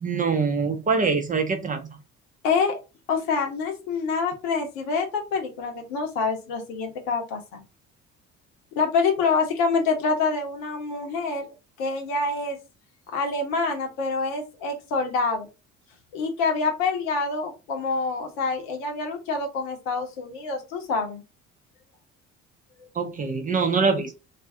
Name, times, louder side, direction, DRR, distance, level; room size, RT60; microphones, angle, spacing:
voice 1, 0.0-1.8 23.0-24.1, right 5 dB, 20° right, 5 dB, 0.6 m, -24 dB
voice 2, 2.4-2.8 3.1-7.6 8.7-11.5 11.8-12.6 13.1-15.5 16.1-21.2 22.8-22.9, left 4 dB, 60° left, 4 dB, 0.9 m, -26 dB
2.4 x 2.4 x 3.5 m, 0.29 s
figure-of-eight pair, 50°, 38 cm